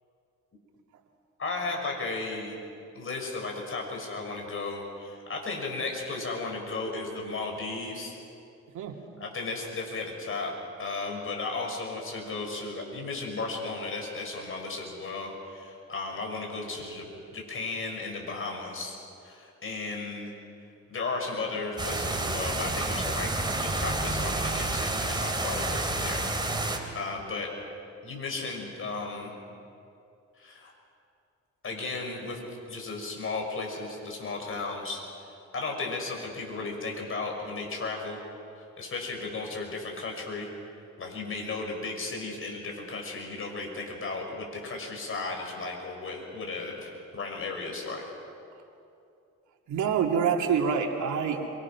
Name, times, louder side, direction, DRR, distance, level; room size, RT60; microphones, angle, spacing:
voice 1, 1.4-2.6 2.9-8.1 9.2-10.5 10.8-17.0 17.3-19.0 19.2-20.3 20.9-23.3 23.6-26.3 26.9-27.5 28.0-29.4 30.4-30.7 31.6-38.2 38.6-40.5 41.0-48.1, left 3 dB, 45° left, 1 dB, 6.4 m, -35 dB
sound 1, 21.8-26.8, right 2 dB, 15° right, 3.2 m, -29 dB
voice 2, 49.7-51.5, right 7 dB, 75° right, 2 dB, 2.7 m, -26 dB
27.0 x 24.5 x 6.1 m, 2.6 s
cardioid pair, 90°, 30 cm